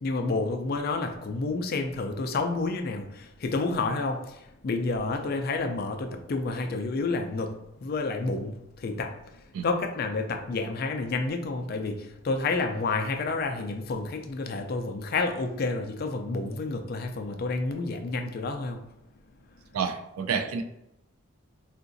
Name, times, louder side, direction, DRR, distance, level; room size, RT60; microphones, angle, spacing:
voice 1, 0.0-9.2 9.6-18.8, left 3 dB, 45° left, 5 dB, 0.3 m, -30 dB
voice 2, 19.7-20.6, right 6 dB, 90° right, 8 dB, 0.4 m, -29 dB
3.7 x 2.5 x 2.5 m, 0.84 s
head